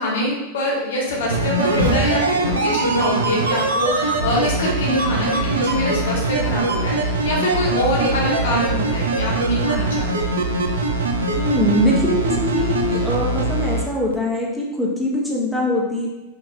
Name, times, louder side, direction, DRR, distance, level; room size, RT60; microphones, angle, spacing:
voice 1, 0.0-10.4, left 1 dB, 60° left, -3 dB, 1.0 m, -24 dB
sound 1, 1.1-6.6, equal, 85° left, 0.8 m, -34 dB
sound 2, 1.3-13.8 14.1-14.2, right 2 dB, 70° right, 0.4 m, -22 dB
sound 3, 1.7-2.7, left 2 dB, 90° right, 0.8 m, -25 dB
voice 2, 11.4-16.1, left 1 dB, ahead, -5 dB, 0.8 m, -22 dB
4.3 x 2.8 x 2.8 m, 1.1 s
figure-of-eight pair, 90°, 0 cm